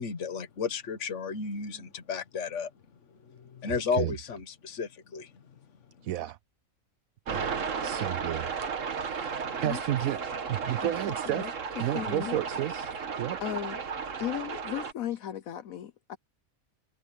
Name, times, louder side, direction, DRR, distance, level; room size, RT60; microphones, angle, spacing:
voice 1, 0.0-2.7 3.5-5.3, left 5 dB, 60° left, 1.6 m, -33 dB
voice 2, 3.7-4.1 6.0-6.4 7.3-8.5 8.8-10.2 10.5-11.5 11.8-12.9 13.2-13.4, right 13 dB, 85° right, 1.0 m, -32 dB
sound 1, 7.3-14.9, right 6 dB, 65° right, 1.8 m, -34 dB
voice 3, 10.8-12.4 13.4-13.8 14.2-16.2, left 11 dB, 80° left, 1.2 m, -36 dB
omnidirectional pair, 1.5 m